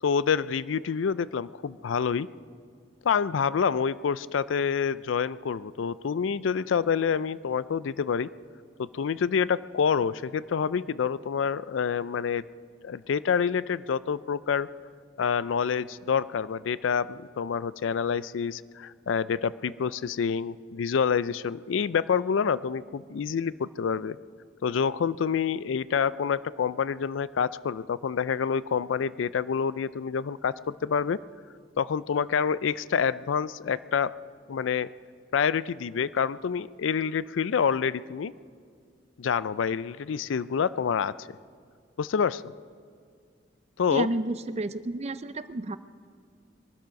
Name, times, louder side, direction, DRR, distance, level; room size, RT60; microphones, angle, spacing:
voice 1, 0.0-2.3 3.0-8.3 8.8-12.4 12.8-14.7 15.2-24.2 24.6-31.2 31.8-34.1 34.5-34.9 35.3-38.3 39.2-41.1 42.0-42.4 43.8-44.1, left 6 dB, 85° left, 17 dB, 0.4 m, -27 dB
voice 2, 43.9-45.8, right 2 dB, 35° right, 13 dB, 0.5 m, -31 dB
22.5 x 12.5 x 5.2 m, 2.1 s
head